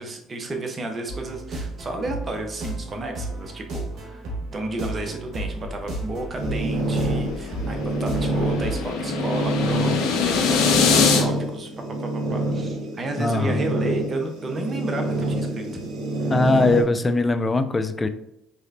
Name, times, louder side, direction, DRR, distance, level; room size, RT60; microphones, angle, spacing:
voice 1, 0.0-4.2 4.5-11.7 12.0-15.7, right 2 dB, 35° right, 4 dB, 0.9 m, -32 dB
sound 1, 1.1-8.9, right 1 dB, 55° right, 1.4 m, -33 dB
sound 2, 6.3-16.8, right 1 dB, 75° right, 1.0 m, -27 dB
sound 3, 6.9-11.2, left 6 dB, 75° left, 0.7 m, -23 dB
voice 2, 13.2-13.6 16.3-18.1, left 2 dB, 25° left, 10 dB, 0.4 m, -21 dB
3.8 x 3.1 x 2.7 m, 0.83 s
hypercardioid pair, 65°, 0 cm